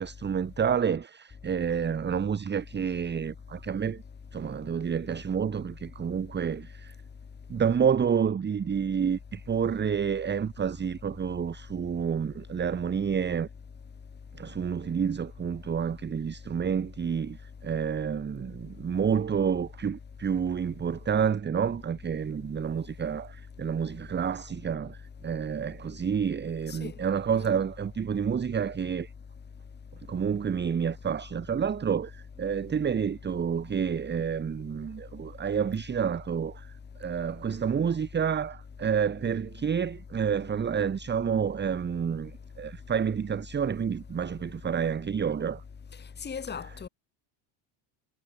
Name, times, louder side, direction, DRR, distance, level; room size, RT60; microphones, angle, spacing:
voice 1, 0.0-4.0 4.3-6.9 7.5-13.5 14.3-29.1 30.1-36.7 37.0-45.6, right 7 dB, 20° right, 0.9 m, -29 dB
voice 2, 46.2-46.9, left 6 dB, 20° left, 1.5 m, -38 dB
cardioid pair, 105°, 50 cm